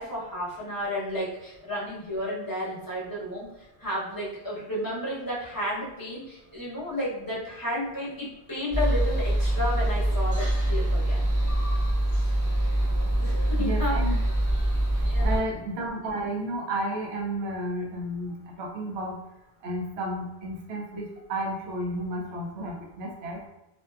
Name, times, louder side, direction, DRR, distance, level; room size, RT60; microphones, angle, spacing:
voice 1, 0.0-3.5 3.8-11.3 13.2-14.1 15.0-15.4, left 1 dB, 20° left, -8 dB, 0.8 m, -32 dB
sound 1, 8.7-15.4, right 1 dB, 20° right, 0.8 m, -24 dB
voice 2, 13.6-14.2 15.2-19.2 19.6-23.4, right 1 dB, 80° right, 0 dB, 0.8 m, -32 dB
2.6 x 2.2 x 2.3 m, 0.94 s
omnidirectional pair, 1.1 m